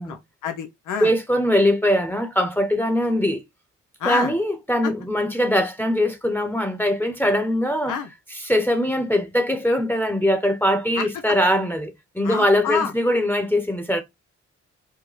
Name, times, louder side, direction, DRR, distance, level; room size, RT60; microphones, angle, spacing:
voice 1, 0.0-1.1 4.0-4.3 7.9-8.1 11.0-11.1 12.2-12.9, left 7 dB, 85° left, 0.8 m, -28 dB
voice 2, 1.0-3.4 4.0-8.0 8.3-14.0, equal, 5° left, 1.0 m, -21 dB
4.9 x 2.1 x 4.1 m
supercardioid pair, 50°, 30 cm